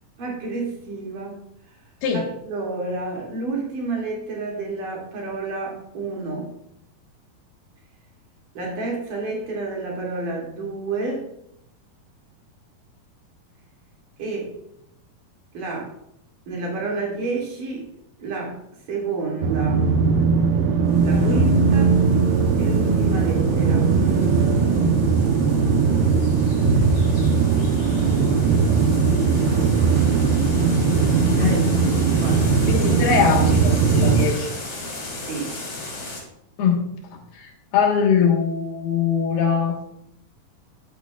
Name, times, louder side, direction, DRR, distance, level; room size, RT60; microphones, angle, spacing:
voice 1, 0.2-1.4 2.1-6.5 8.6-11.3 14.2-14.5 15.5-15.9 16.5-17.9 18.2-18.6 18.9-19.8 21.0-22.0 22.6-24.0 31.3-31.6 32.1-32.6 35.2-35.5, right 3 dB, 60° right, -3 dB, 3.8 m, -30 dB
sound 1, 19.4-34.3, right 5 dB, 80° right, 2.8 m, -19 dB
sound 2, 20.9-36.2, left 2 dB, 40° left, 4.0 m, -37 dB
voice 2, 32.7-34.5 36.6-36.8 37.3-39.8, left 7 dB, 80° left, 1 dB, 3.4 m, -22 dB
13.0 x 8.6 x 2.4 m, 0.76 s
omnidirectional pair, 4.5 m